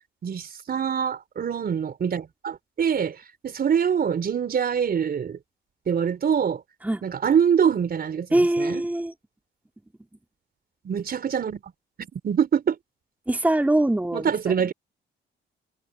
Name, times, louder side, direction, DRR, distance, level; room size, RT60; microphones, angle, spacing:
voice 1, 0.2-3.2 3.4-5.4 5.9-6.6 7.0-8.8 10.8-11.6 12.1-12.8 14.1-14.7, right 7 dB, 50° right, 4.3 m, -24 dB
voice 2, 8.3-9.1 13.3-14.6, right 1 dB, 10° right, 3.3 m, -23 dB
cardioid pair, 90°, 20 cm